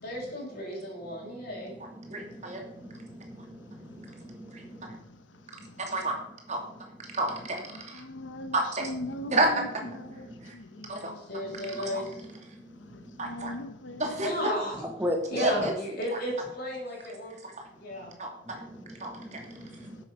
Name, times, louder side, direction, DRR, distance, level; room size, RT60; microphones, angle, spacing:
voice 1, 0.0-1.7 11.2-12.2 14.2-14.9 15.3-17.3 17.7-18.1, equal, 55° left, -2 dB, 5.7 m, -34 dB
voice 2, 2.1-2.6 5.8-6.2 6.5-6.6 7.1-7.6 8.5-8.8 9.3-9.5 10.9-11.1 11.8-12.0 13.2-13.5 14.0-14.5 15.4-15.7 18.2-18.3 19.0-19.4, right 2 dB, 40° right, 1 dB, 2.7 m, -29 dB
voice 3, 2.9-3.6 3.9-4.6 10.3-10.4 15.0-15.2 19.1-20.0, left 1 dB, 10° right, 4 dB, 1.2 m, -36 dB
voice 4, 7.9-10.3 10.5-11.2 11.4-11.7 13.2-14.3 15.4-15.5, left 1 dB, 90° left, 9 dB, 1.1 m, -40 dB
10.5 x 8.0 x 5.7 m, 0.76 s
head